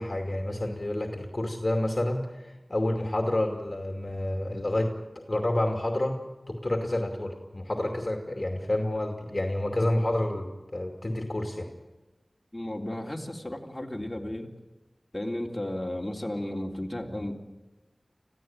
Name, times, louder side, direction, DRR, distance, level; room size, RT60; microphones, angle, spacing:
voice 1, 0.0-6.2 6.5-11.7, left 1 dB, 40° left, 3 dB, 2.5 m, -29 dB
voice 2, 12.5-14.5 15.1-17.3, left 1 dB, 20° left, 0 dB, 3.3 m, -34 dB
25.5 x 16.0 x 9.0 m, 1.1 s
wide cardioid pair, 50°, 0 cm